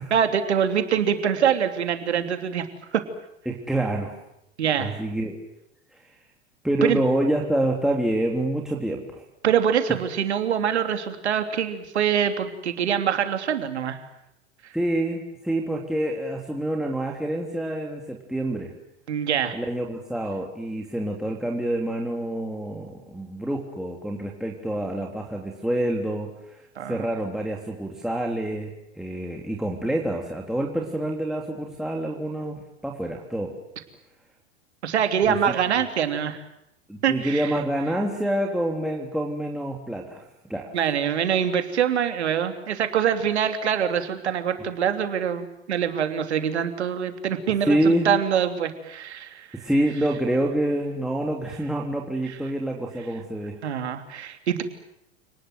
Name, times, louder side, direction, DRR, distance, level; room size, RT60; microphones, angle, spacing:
voice 1, 0.1-2.7 2.9-3.0 4.6-5.0 6.8-7.0 9.4-14.0 19.1-19.6 26.8-27.0 34.8-36.4 37.0-37.5 40.7-49.5 53.6-54.6, right 8 dB, 75° right, 7 dB, 3.2 m, -24 dB
voice 2, 3.4-4.2 4.8-5.4 5.9-6.2 6.6-9.2 14.7-18.7 19.5-33.5 35.3-35.5 36.9-40.7 47.7-48.1 49.5-53.6, right 1 dB, ahead, -1 dB, 3.4 m, -27 dB
29.0 x 19.5 x 9.3 m, 0.82 s
hypercardioid pair, 95°, 33 cm